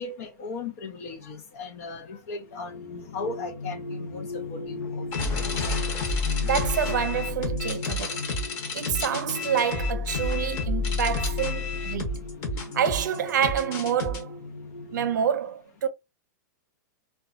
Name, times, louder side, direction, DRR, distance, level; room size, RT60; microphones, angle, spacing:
voice 1, 0.0-5.0 5.4-5.5, left 3 dB, 50° left, 0.6 m, -37 dB
sound 1, 2.4-15.2, left 3 dB, 90° left, 0.6 m, -37 dB
sound 2, 5.1-14.2, left 3 dB, 30° left, 0.9 m, -30 dB
voice 2, 6.4-8.2 8.7-12.1 12.7-14.3 14.9-15.9, right 8 dB, 85° right, 0.5 m, -27 dB
2.8 x 2.2 x 2.4 m
supercardioid pair, 160°, 10 cm